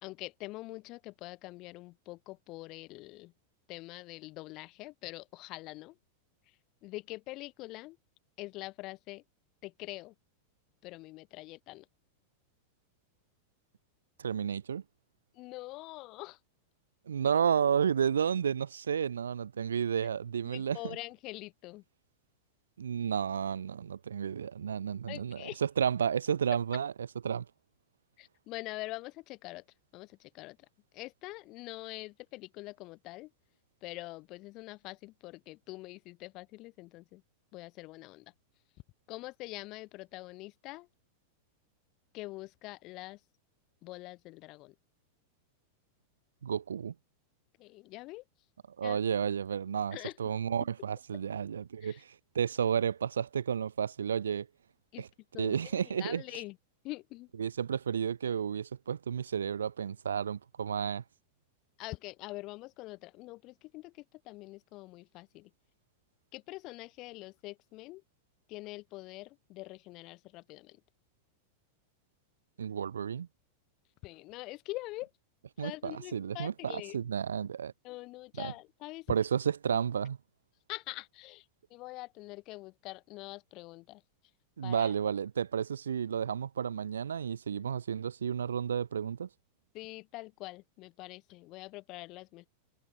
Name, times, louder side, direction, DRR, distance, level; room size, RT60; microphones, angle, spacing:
voice 1, 0.0-3.3 3.7-5.9 6.8-8.0 8.4-9.2 9.6-10.1 10.8-11.8 15.4-16.4 20.4-21.8 25.1-25.6 28.2-29.6 29.9-30.6 30.9-33.3 33.8-37.2 37.5-38.3 39.1-40.9 42.1-43.2 43.8-44.7 47.6-48.2 48.8-49.0 49.9-50.1 51.8-52.0 54.9-55.0 55.3-55.6 55.9-56.6 56.8-57.3 61.8-63.9 64.3-65.5 66.3-68.0 68.5-70.8 74.0-75.1 75.6-77.0 77.8-79.1 80.7-81.4 81.7-84.0 84.6-84.9 89.7-92.5, left 20 dB, 40° left, 0.8 m, -44 dB
voice 2, 14.2-14.8 17.1-21.0 22.8-27.5 46.4-46.9 48.8-54.5 55.0-55.1 55.4-56.2 57.4-61.0 72.6-73.3 75.6-77.7 78.3-78.5 79.1-80.2 84.6-89.3, right 7 dB, 70° right, 0.5 m, -32 dB
figure-of-eight pair, 90°, 0 cm